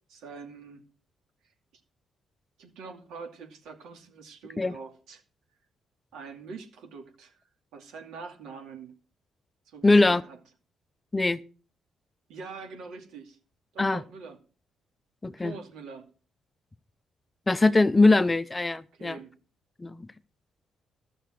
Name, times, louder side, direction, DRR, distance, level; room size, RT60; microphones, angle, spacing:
voice 1, 0.1-0.8 2.6-5.2 6.1-7.3 7.7-8.9 9.7-10.4 12.3-13.4 13.7-14.4 15.4-16.1 18.9-19.3, right 4 dB, 90° right, 2.4 m, -44 dB
voice 2, 9.8-10.2 11.1-11.4 13.8-14.0 15.2-15.5 17.5-19.2 19.8-20.1, left 2 dB, 20° left, 0.6 m, -21 dB
13.5 x 6.7 x 6.3 m
cardioid pair, 90°, 0 cm